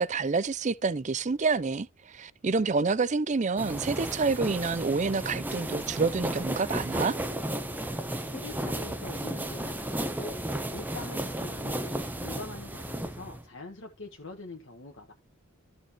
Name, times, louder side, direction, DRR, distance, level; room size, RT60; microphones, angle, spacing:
voice 1, 0.0-7.2, right 4 dB, 35° right, 0.5 m, -28 dB
sound 1, 3.6-13.4, right 1 dB, 10° right, 1.0 m, -34 dB
voice 2, 8.3-15.1, left 2 dB, 60° left, 1.5 m, -44 dB
13.0 x 6.6 x 3.0 m
head